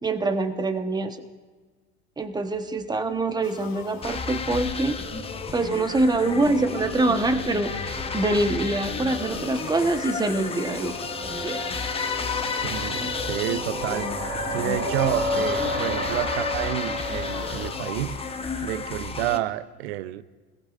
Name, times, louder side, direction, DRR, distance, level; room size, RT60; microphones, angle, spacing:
voice 1, 0.0-1.2 2.2-5.0 5.5-10.9 11.4-11.6, right 2 dB, 10° right, 1.2 m, -25 dB
sound 1, 3.3-18.6, equal, 30° right, 3.9 m, -33 dB
sound 2, 3.4-5.4 9.1-14.4 17.0-19.4, left 7 dB, 70° left, 2.6 m, -46 dB
sound 3, 4.0-19.4, left 5 dB, 15° left, 1.0 m, -32 dB
voice 2, 12.6-14.2 14.5-18.2 18.6-20.2, right 14 dB, 65° right, 0.8 m, -29 dB
27.0 x 18.0 x 2.6 m
hypercardioid pair, 95°, 34 cm